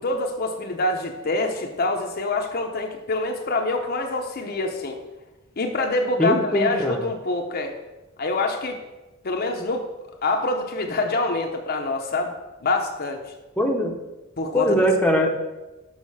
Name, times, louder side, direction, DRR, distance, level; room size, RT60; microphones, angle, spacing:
voice 1, 0.0-5.0 5.6-7.7 8.2-8.8 9.2-9.8 10.2-12.3 12.6-13.2 14.4-14.9, left 2 dB, 50° left, 3 dB, 0.8 m, -25 dB
voice 2, 6.2-7.0 13.6-13.9 14.5-15.3, equal, 5° left, 1 dB, 0.8 m, -21 dB
6.4 x 5.5 x 5.6 m, 1.1 s
head